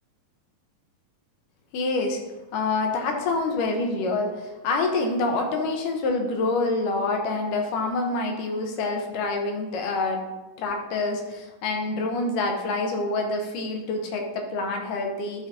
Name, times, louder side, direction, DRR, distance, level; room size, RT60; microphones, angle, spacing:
voice 1, 1.7-2.2 2.5-10.2 10.6-15.5, left 3 dB, 75° left, 3 dB, 2.4 m, -26 dB
11.0 x 4.0 x 4.0 m, 1.1 s
omnidirectional pair, 4.1 m